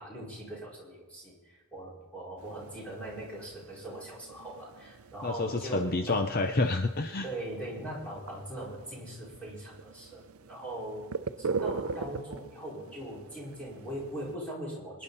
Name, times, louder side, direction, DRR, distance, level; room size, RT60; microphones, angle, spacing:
voice 1, 0.0-6.2 7.2-11.1 11.4-15.0, right 1 dB, 5° left, -6 dB, 5.1 m, -41 dB
sound 1, 2.4-14.4, right 4 dB, 75° right, 0.6 m, -41 dB
voice 2, 5.2-7.3, left 3 dB, 40° left, 6 dB, 0.6 m, -28 dB
25.5 x 10.5 x 4.1 m, 1.3 s
head